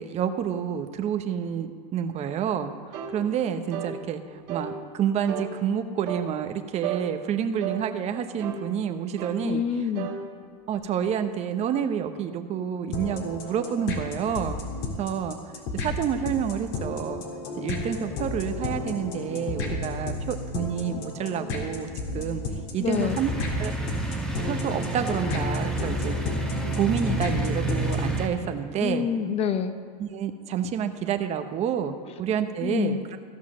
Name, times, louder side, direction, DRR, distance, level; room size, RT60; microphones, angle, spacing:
voice 1, 0.0-9.6 10.7-14.6 15.0-15.4 15.8-17.2 17.6-21.9 22.1-22.4 22.7-23.3 23.6-23.7 24.4-29.1 30.0-33.0, right 8 dB, 35° right, 8 dB, 0.8 m, -29 dB
sound 1, 2.9-3.2 3.7-4.0 4.5-4.7 5.3-5.5 6.1-6.3 6.8-7.1 7.6-7.8 8.4-8.6 9.2-9.4 10.0-10.2 10.7-10.8, right 9 dB, 50° right, 1.5 m, -33 dB
voice 2, 9.4-10.1 22.8-23.2 28.8-29.8 32.6-33.0, left 7 dB, 30° left, 10 dB, 0.7 m, -26 dB
sound 2, 12.9-28.2, left 2 dB, 55° left, 2.0 m, -33 dB
sound 3, 22.9-28.3, right 2 dB, 5° left, 1.1 m, -29 dB
14.5 x 5.6 x 6.3 m, 2.2 s
supercardioid pair, 130°, 20 cm